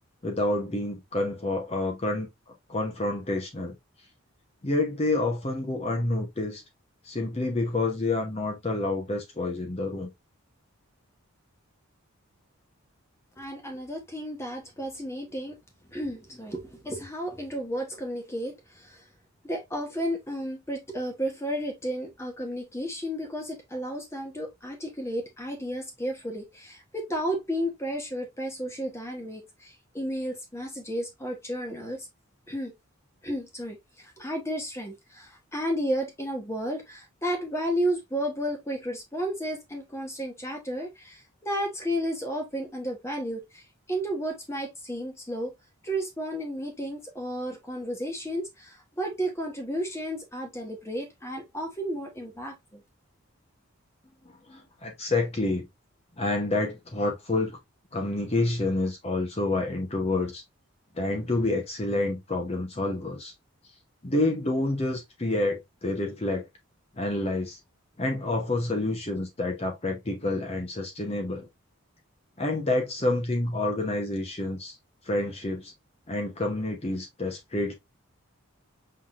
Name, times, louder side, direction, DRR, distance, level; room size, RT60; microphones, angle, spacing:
voice 1, 0.2-2.3 2.7-3.8 4.6-6.6 7.0-10.1 54.5-55.7 56.2-57.6 57.9-60.4 60.9-63.3 64.0-66.5 66.9-67.6 68.0-71.5 72.4-74.8 75.0-75.7 76.1-77.7, left 2 dB, 30° left, 0.8 m, -28 dB
voice 2, 13.4-15.6 15.9-19.0 19.4-32.1 32.5-32.7 33.2-45.5 45.8-52.8, equal, 10° left, 1.1 m, -33 dB
5.7 x 3.3 x 2.4 m
head